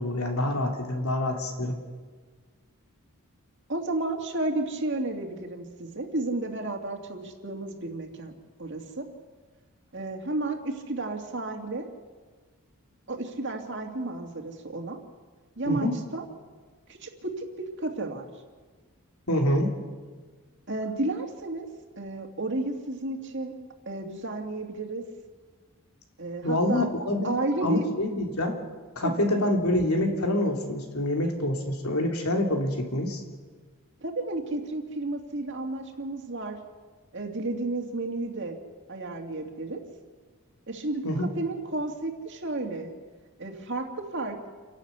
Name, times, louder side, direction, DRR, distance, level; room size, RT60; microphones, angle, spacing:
voice 1, 0.0-1.8 15.6-15.9 19.3-19.7 26.4-27.3 27.6-28.6 29.0-33.2 41.0-41.3, left 1 dB, 80° left, 2 dB, 3.1 m, -26 dB
voice 2, 3.7-8.3 8.6-9.1 9.9-11.9 13.1-15.0 15.6-16.2 16.9-17.5 17.8-18.3 20.7-21.7 22.0-23.6 23.9-25.0 26.2-26.9 27.2-27.9 29.0-29.2 34.0-36.6 37.1-38.6 38.9-39.8 40.7-42.9 43.4-44.5, right 2 dB, 55° right, 3 dB, 2.4 m, -32 dB
29.0 x 11.5 x 8.2 m, 1.5 s
head